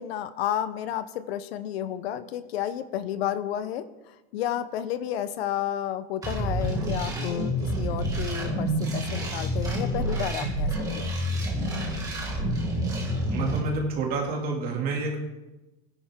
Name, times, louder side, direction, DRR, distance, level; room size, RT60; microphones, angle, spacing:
voice 1, 0.0-3.9 4.3-11.1, left 11 dB, 75° left, 13 dB, 0.9 m, -31 dB
sound 1, 6.2-13.6, equal, 10° right, 2.0 m, -28 dB
voice 2, 13.3-15.2, right 3 dB, 30° right, 0 dB, 2.5 m, -28 dB
17.0 x 10.5 x 3.7 m, 1.0 s
supercardioid pair, 165°, 32 cm